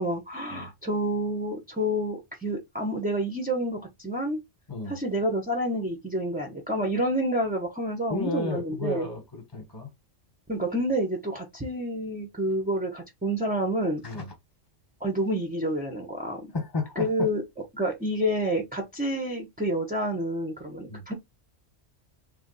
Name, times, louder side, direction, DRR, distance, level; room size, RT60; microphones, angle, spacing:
voice 1, 0.0-4.4 4.9-9.1 10.5-14.0 15.0-16.5 17.0-17.4 17.7-21.1, right 1 dB, 10° right, 0.4 m, -28 dB
voice 2, 8.1-9.9 14.0-14.3 16.5-17.3 20.9-21.0, left 2 dB, 25° left, 0.9 m, -32 dB
3.3 x 2.2 x 3.8 m
omnidirectional pair, 1.2 m